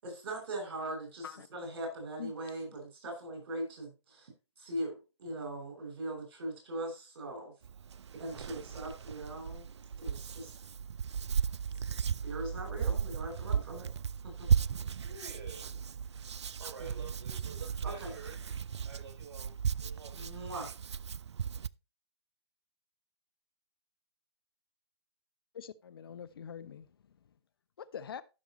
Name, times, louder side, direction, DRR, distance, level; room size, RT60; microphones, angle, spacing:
voice 1, 0.0-4.3 4.6-7.5 8.1-9.7 10.0-10.5 12.2-13.9 14.2-14.5 16.9-17.1 17.8-18.1 20.1-20.7, right 1 dB, 50° right, 6.8 m, -40 dB
Hands, 7.6-21.7, right 7 dB, 70° right, 0.4 m, -35 dB
voice 2, 8.3-8.9 15.0-16.1 16.6-18.4 18.8-20.1, right 5 dB, 35° right, 6.5 m, -50 dB
voice 3, 25.5-26.9 27.8-28.2, left 8 dB, 55° left, 0.7 m, -44 dB
15.0 x 6.3 x 3.1 m
figure-of-eight pair, 130°, 15 cm